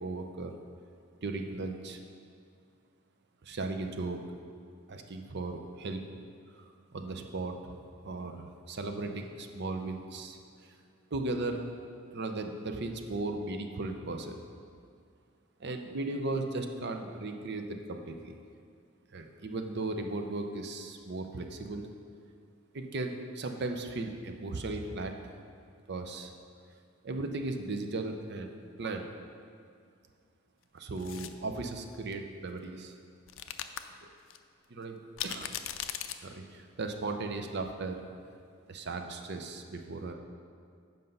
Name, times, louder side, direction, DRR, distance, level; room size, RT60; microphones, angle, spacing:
voice 1, 0.0-0.5 1.2-2.0 3.4-4.2 4.9-6.0 6.5-6.6 6.9-7.7 8.0-10.4 10.6-10.7 11.1-11.6 12.1-14.4 15.6-18.3 19.1-21.8 22.7-25.1 25.9-26.3 27.0-28.5 28.8-29.1 30.7-32.9 34.7-35.5 36.2-38.0 38.7-40.1, right 2 dB, 60° right, 5 dB, 0.6 m, -36 dB
sound 1, 31.0-31.3 33.3-33.8 34.3-34.4 35.2-36.1, left 11 dB, 75° left, 0.4 m, -37 dB
7.8 x 5.3 x 5.3 m, 2.3 s
head